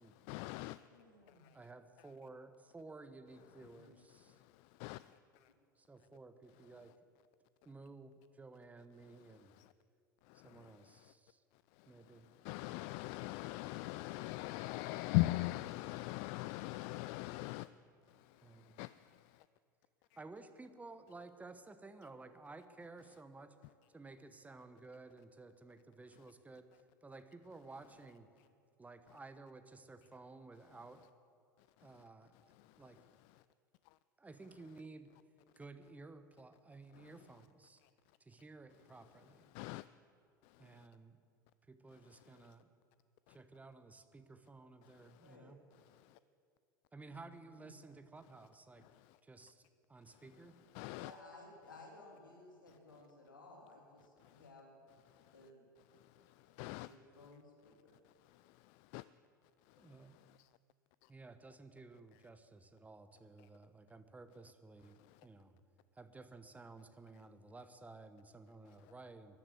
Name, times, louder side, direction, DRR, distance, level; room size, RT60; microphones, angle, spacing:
voice 1, 0.2-0.9 1.4-1.6 4.3-5.5 9.3-9.7 10.3-10.8 11.7-17.7 18.1-19.4 32.6-32.8 39.5-39.9 40.4-40.9 43.3-43.4 44.8-45.3 45.9-46.2 50.7-51.1 54.2-54.4 55.1-55.3 55.9-56.9 58.0-59.0 59.7-60.5 61.0-61.1 65.1-65.2, left 20 dB, 55° left, 16 dB, 0.3 m, -42 dB
voice 2, 0.9-1.4 3.7-4.0 45.2-45.5 47.1-47.3 47.6-47.7 50.9-54.8 55.3-55.6 56.8-57.7, left 2 dB, 90° left, -1 dB, 3.6 m, -57 dB
voice 3, 1.5-4.4 5.8-6.9 7.6-9.5 10.3-11.4 11.9-12.3 18.4-18.8 20.2-23.6 23.9-26.7 27.0-28.3 28.8-31.0 31.8-32.3 32.8-33.0 34.2-35.1 35.6-37.8 38.2-39.5 40.6-41.2 41.7-42.7 43.3-45.6 46.9-48.9 49.2-50.6 59.8-60.2 61.1-65.6 65.9-69.4, right 3 dB, 15° right, 10 dB, 1.0 m, -55 dB
13.5 x 11.5 x 7.8 m, 2.6 s
hypercardioid pair, 80°, 11 cm